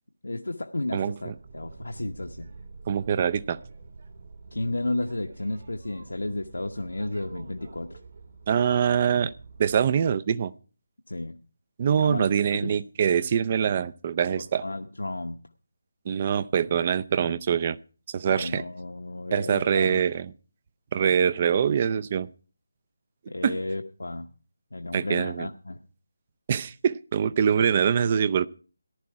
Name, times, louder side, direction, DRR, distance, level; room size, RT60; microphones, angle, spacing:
voice 1, 0.2-2.5 4.5-8.0 11.1-11.4 12.0-12.3 12.5-12.7 14.4-15.4 18.3-20.0 23.3-24.3 24.7-25.8, left 2 dB, 70° left, 5 dB, 0.8 m, -32 dB
Boat Water vehicle, 1.2-10.1, right 4 dB, 50° right, 2.3 m, -47 dB
voice 2, 2.9-3.6 8.5-9.3 9.6-10.5 11.8-14.6 16.1-17.8 18.1-18.6 19.3-20.3 20.9-22.3 23.4-23.5 24.9-25.5 26.5-28.5, right 7 dB, 30° right, 16 dB, 0.5 m, -24 dB
14.5 x 11.5 x 4.6 m, 0.39 s
figure-of-eight pair, 155°, 0 cm